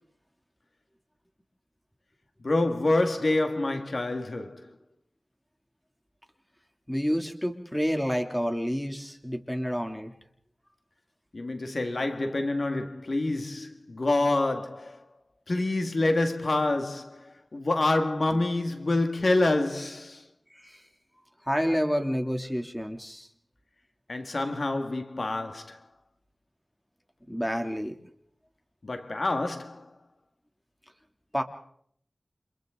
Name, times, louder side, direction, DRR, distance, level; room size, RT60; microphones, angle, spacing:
voice 1, 2.4-4.8 11.3-15.0 15.5-20.3 24.1-25.9 28.8-29.9, left 2 dB, 65° left, 2.0 m, -27 dB
voice 2, 6.9-10.1 20.5-20.8 21.4-23.3 27.3-27.9 31.3-31.4, equal, 5° left, 2.8 m, -29 dB
29.5 x 27.0 x 3.9 m
wide cardioid pair, 60°, 0 cm